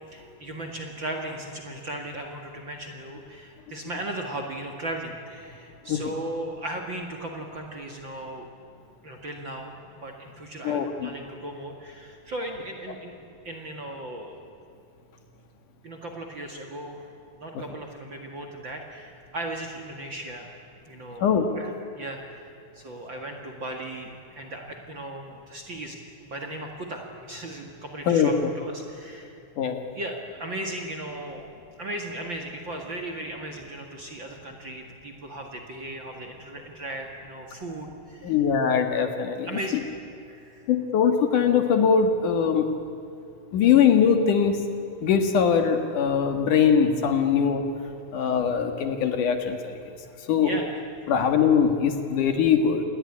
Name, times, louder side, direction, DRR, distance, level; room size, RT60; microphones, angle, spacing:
voice 1, 0.1-8.5 9.0-13.2 13.4-14.4 15.8-17.1 17.4-20.5 20.9-22.4 22.8-29.4 29.9-31.4 31.8-38.3 39.4-39.8 40.3-40.6 50.4-50.7, right 1 dB, 40° right, 2 dB, 2.1 m, -37 dB
voice 2, 10.6-11.1 17.5-17.6 21.2-21.5 28.1-28.5 29.6-29.8 38.2-39.5 40.7-42.7 43.5-44.6 45.0-47.7 48.1-49.9 50.3-50.5 51.1-52.8, left 7 dB, 65° left, 6 dB, 2.9 m, -22 dB
28.0 x 20.0 x 9.9 m, 2.6 s
omnidirectional pair, 4.3 m